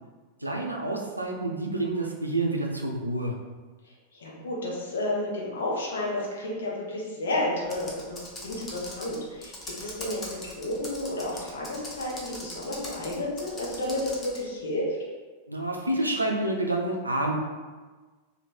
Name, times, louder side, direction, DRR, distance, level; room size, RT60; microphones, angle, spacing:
voice 1, 0.4-3.4 15.5-17.4, right 2 dB, 85° right, 1 dB, 0.5 m, -28 dB
voice 2, 3.8-9.5 9.8-15.0, left 1 dB, 65° left, -3 dB, 1.0 m, -31 dB
Computer keyboard, 7.7-14.4, left 1 dB, 20° left, 0.8 m, -41 dB
3.0 x 2.8 x 4.2 m, 1.4 s
figure-of-eight pair, 90°, 0 cm